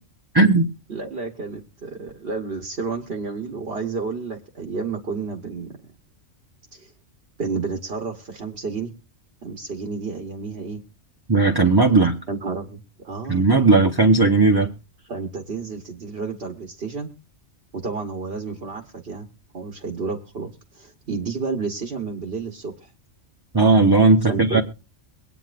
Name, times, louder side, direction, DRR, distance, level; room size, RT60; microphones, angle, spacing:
voice 1, 0.3-0.7 11.3-12.1 13.3-14.7 23.5-24.6, right 3 dB, 20° right, 2 dB, 0.8 m, -16 dB
voice 2, 0.9-5.8 6.7-6.9 7.4-8.9 9.4-10.8 12.3-13.5 15.1-17.1 17.7-19.3 19.5-22.9 24.3-24.6, right 4 dB, 55° right, 3 dB, 1.3 m, -31 dB
23.5 x 9.0 x 2.5 m, 0.31 s
omnidirectional pair, 1.3 m